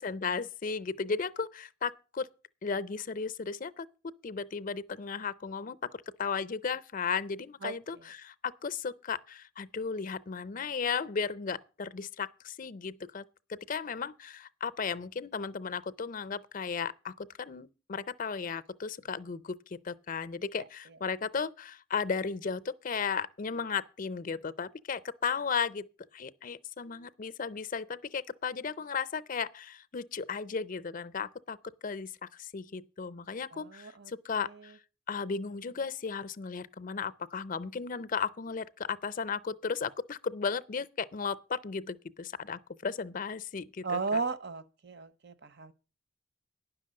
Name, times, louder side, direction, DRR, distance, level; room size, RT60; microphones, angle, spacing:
voice 1, 0.0-2.3 2.6-13.2 13.5-25.8 26.1-34.8 35.1-43.9 44.1-44.2, left 5 dB, 40° left, 0.5 m, -35 dB
voice 2, 7.6-8.1 20.9-21.0 33.5-34.1 34.4-34.7 43.8-45.7, right 4 dB, 50° right, 0.7 m, -36 dB
10.5 x 6.0 x 7.5 m
head